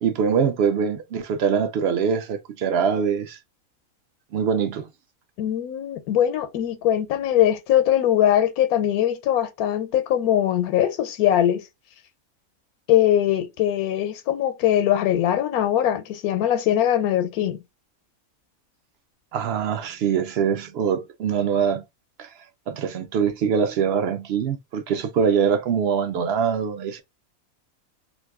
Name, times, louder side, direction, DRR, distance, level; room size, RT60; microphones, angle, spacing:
voice 1, 0.0-3.4 4.3-4.9 19.3-21.8 22.2-22.3 22.7-27.0, right 7 dB, 70° right, 0.6 m, -23 dB
voice 2, 5.4-11.6 12.9-17.6, left 11 dB, 90° left, 1.1 m, -21 dB
2.6 x 2.5 x 3.4 m
omnidirectional pair, 1.5 m